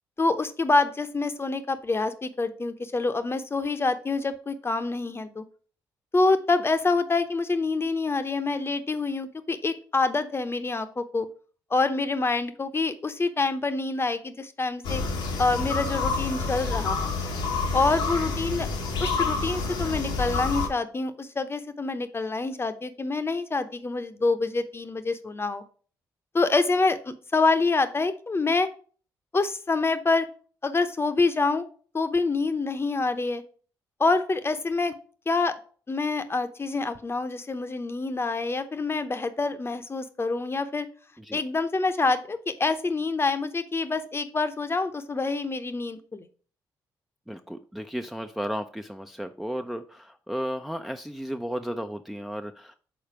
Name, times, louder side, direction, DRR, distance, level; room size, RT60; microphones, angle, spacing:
voice 1, 0.2-5.4 6.1-11.3 11.7-15.0 15.4-17.1 17.7-18.7 19.0-25.6 26.3-28.7 29.3-30.3 30.6-31.7 31.9-33.4 34.0-34.9 35.3-35.5 35.9-40.9 41.3-46.3, left 3 dB, 30° left, 0.8 m, -26 dB
sound 1, 14.8-20.7, left 4 dB, 90° left, 1.4 m, -28 dB
voice 2, 47.3-52.7, equal, 5° right, 0.5 m, -34 dB
5.1 x 4.0 x 5.8 m
supercardioid pair, 60°, 8 cm